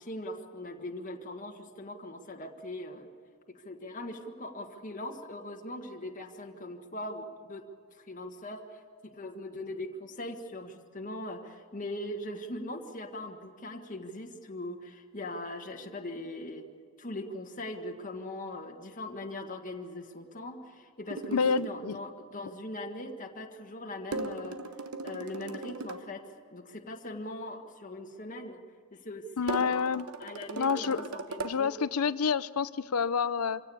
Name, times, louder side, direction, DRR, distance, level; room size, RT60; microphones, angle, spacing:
voice 1, 0.0-3.1 3.5-7.6 7.9-16.6 17.0-24.6 25.0-28.6 28.9-29.9 30.2-31.7, left 1 dB, 35° left, 2 dB, 1.5 m, -40 dB
sound 1, 21.1-21.8 24.1-26.1 29.5-31.6, right 3 dB, 90° right, 1.2 m, -38 dB
voice 2, 21.3-22.0 29.4-30.0 30.6-31.1 31.4-33.6, left 6 dB, 85° left, 15 dB, 0.7 m, -28 dB
25.0 x 17.0 x 8.5 m, 2.3 s
head